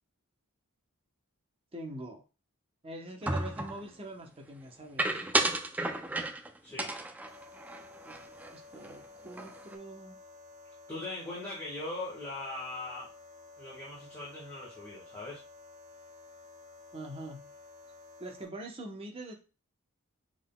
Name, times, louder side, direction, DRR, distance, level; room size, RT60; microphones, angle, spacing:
voice 1, 1.7-2.2 2.8-5.3 8.0-10.2 16.9-17.5 18.2-19.3, right 1 dB, 25° right, 2 dB, 0.9 m, -44 dB
sound 1, 3.3-3.8 5.0-6.5 6.8-8.5 8.8-9.0 9.3-9.7, right 2 dB, 5° right, 0.4 m, -32 dB
sound 2, 7.3-18.4, left 3 dB, 60° right, 1.7 m, -53 dB
voice 2, 10.9-13.1 13.6-15.4, left 2 dB, 10° left, -7 dB, 1.5 m, -40 dB
6.2 x 3.7 x 2.2 m, 0.32 s
head